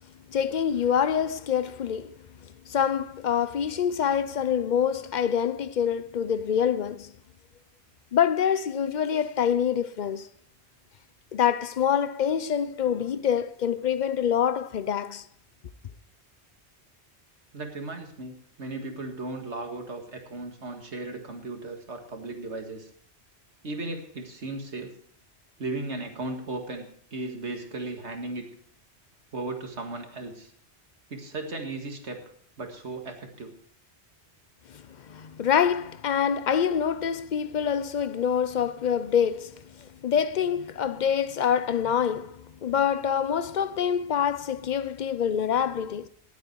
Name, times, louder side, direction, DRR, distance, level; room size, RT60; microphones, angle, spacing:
voice 1, 0.3-2.2 2.7-7.1 8.1-10.3 11.3-15.2 34.7-46.1, left 8 dB, 50° left, 0.6 m, -26 dB
voice 2, 17.5-22.9 23.6-24.9 25.6-28.5 29.3-30.5 31.1-32.2 32.6-33.5, right 2 dB, 75° right, 2.2 m, -36 dB
18.0 x 8.4 x 4.6 m
omnidirectional pair, 1.2 m